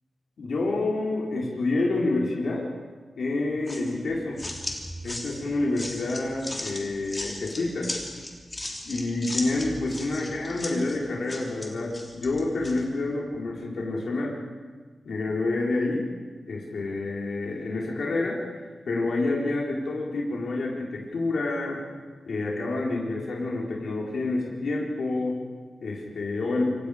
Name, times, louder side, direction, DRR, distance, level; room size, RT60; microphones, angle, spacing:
voice 1, 0.4-2.7 3.2-4.4 5.0-7.9 8.9-14.4 15.0-16.1 16.5-21.8 22.2-25.4 25.8-26.7, left 2 dB, 65° left, -3 dB, 4.2 m, -28 dB
sound 1, 3.7-12.8, left 1 dB, 15° left, 3.3 m, -37 dB
28.0 x 25.5 x 5.1 m, 1.4 s
wide cardioid pair, 170°, 0 cm